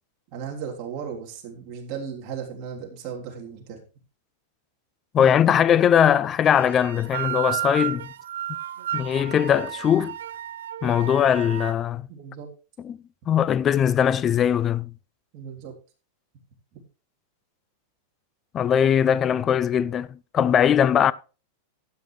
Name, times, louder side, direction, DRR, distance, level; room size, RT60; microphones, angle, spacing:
voice 1, 0.3-3.8 5.2-5.4 12.1-12.5 15.3-15.7 16.7-16.8, right 7 dB, 40° right, 3.4 m, -36 dB
voice 2, 5.1-8.1 8.9-10.1 10.8-12.0 12.8-13.0 13.3-14.9 18.5-21.1, left 9 dB, 25° left, 0.4 m, -20 dB
sound 1, 6.4-11.7, right 11 dB, 90° right, 0.4 m, -33 dB
12.5 x 9.4 x 3.2 m
supercardioid pair, 150°, 0 cm